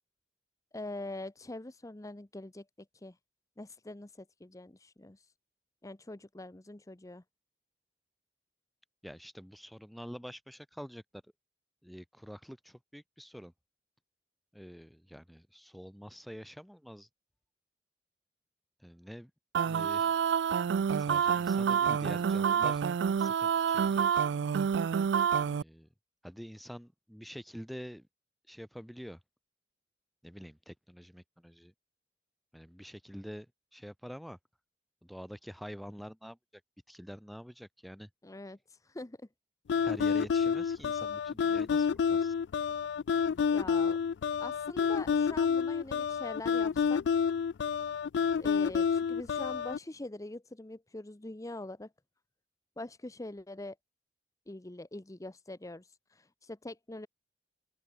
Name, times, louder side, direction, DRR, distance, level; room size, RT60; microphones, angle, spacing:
voice 1, 0.7-2.6 2.9-3.2 3.6-5.3 5.8-7.2 38.2-39.2 43.5-44.0 44.4-47.0 48.4-51.9 52.8-53.8 54.5-57.1, left 2 dB, 20° left, 0.8 m, -44 dB
voice 2, 9.0-11.2 11.8-13.5 14.5-17.1 18.8-19.3 19.6-20.2 21.0-22.8 23.2-24.2 25.3-25.9 26.2-28.1 28.5-29.2 30.2-31.7 32.5-34.4 35.0-36.6 36.9-38.1 39.8-42.3, equal, ahead, 1.6 m, -47 dB
sound 1, 19.5-25.6, right 7 dB, 85° right, 0.4 m, -28 dB
sound 2, 39.7-49.8, left 6 dB, 70° left, 0.3 m, -29 dB
open air
head